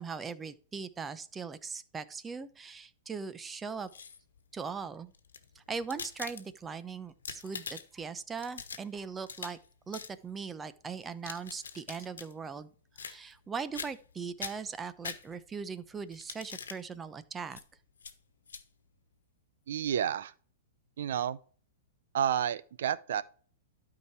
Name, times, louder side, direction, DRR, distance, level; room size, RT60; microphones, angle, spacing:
voice 1, 0.0-3.9 4.5-5.1 5.7-9.6 9.9-12.7 13.0-17.6, right 5 dB, 15° right, 0.8 m, -40 dB
sound 1, 3.7-4.4 5.1-6.7 7.1-8.0 8.4-9.6 9.9-10.1 11.0-12.3 12.9-13.5 13.7-14.1 14.4-15.6 16.1-16.8 17.5-17.6 18.0-18.1 18.5-18.6, left 6 dB, 80° left, 1.2 m, -43 dB
voice 2, 19.7-20.3 21.0-21.4 22.1-23.2, right 9 dB, 65° right, 0.6 m, -30 dB
12.5 x 4.9 x 4.6 m
hypercardioid pair, 115°, 0 cm